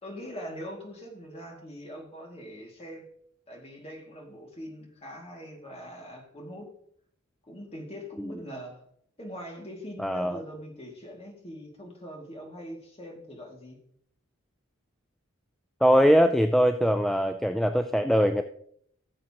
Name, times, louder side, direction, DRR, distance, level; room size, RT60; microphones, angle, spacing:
voice 1, 0.0-3.1 3.5-6.7 7.4-8.8 9.2-13.8, equal, 30° left, 0 dB, 2.3 m, -42 dB
voice 2, 10.0-10.4 15.8-18.4, equal, ahead, 7 dB, 0.3 m, -22 dB
15.5 x 7.4 x 2.9 m, 0.65 s
head